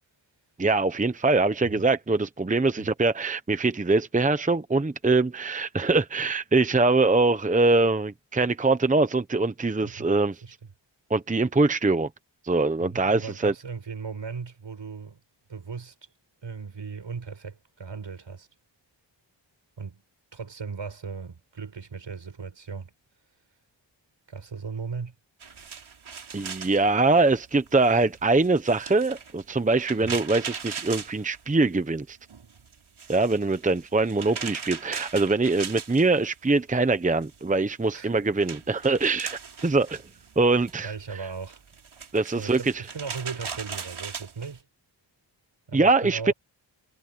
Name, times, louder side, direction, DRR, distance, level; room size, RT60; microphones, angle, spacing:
voice 1, 0.6-10.4 11.1-12.1 12.4-13.5 26.3-32.2 33.1-40.0 40.4-40.9 42.1-42.8 45.7-46.3, right 3 dB, 15° right, 0.8 m, -23 dB
voice 2, 12.8-15.2 15.5-15.9 16.4-18.5 19.8-20.0 20.3-22.9 24.3-25.1 30.0-30.2 37.9-38.1 40.8-41.6 42.3-44.6 45.7-46.3, right 5 dB, 65° right, 7.2 m, -37 dB
sound 1, 25.4-31.9 32.2-36.6 36.9-44.6, right 6 dB, 90° right, 5.6 m, -39 dB
wide cardioid pair, 125°, 47 cm